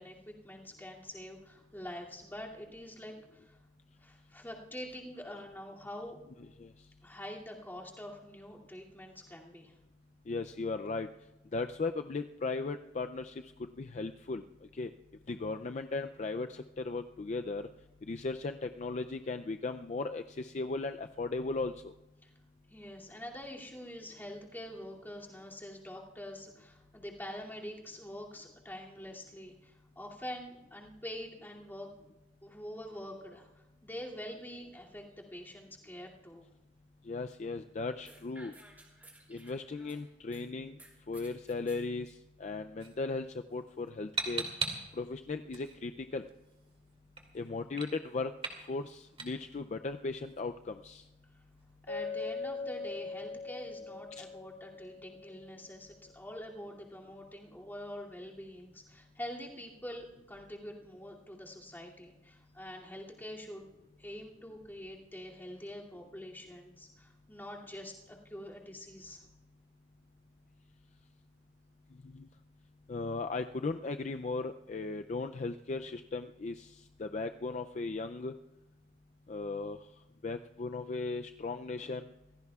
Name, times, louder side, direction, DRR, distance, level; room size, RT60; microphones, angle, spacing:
voice 1, 0.0-3.6 4.0-6.2 7.0-9.7 22.2-22.3 22.7-31.9 32.4-36.5 51.9-63.7 64.0-69.2, left 1 dB, 10° left, -3 dB, 2.6 m, -45 dB
voice 2, 10.3-11.1 11.5-14.4 14.7-14.9 15.3-17.7 18.1-21.9 37.1-38.5 39.3-40.8 41.1-44.5 44.9-46.2 47.3-48.3 48.6-51.0 54.2-54.3 72.0-72.3 72.9-78.3 79.3-79.8 80.2-82.1, left 3 dB, 40° left, 7 dB, 0.4 m, -37 dB
sound 1, 38.1-40.4 40.8-41.8, right 1 dB, 10° right, 3.1 m, -56 dB
sound 2, 42.8-52.6, right 5 dB, 30° right, 2.4 m, -44 dB
Chink clink, 51.9-55.9, left 4 dB, 75° left, 6.9 m, -41 dB
26.0 x 16.5 x 2.4 m, 1.0 s
head